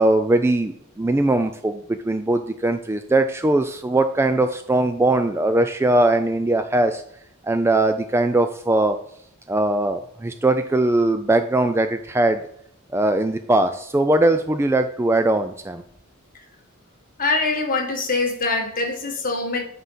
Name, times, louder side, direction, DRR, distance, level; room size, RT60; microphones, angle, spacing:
voice 1, 0.0-7.0 7.4-9.0 9.5-12.4 12.9-15.8, right 2 dB, 10° right, 8 dB, 0.3 m, -20 dB
voice 2, 17.2-19.6, left 3 dB, 40° left, 3 dB, 1.4 m, -23 dB
9.1 x 3.7 x 5.6 m, 0.72 s
head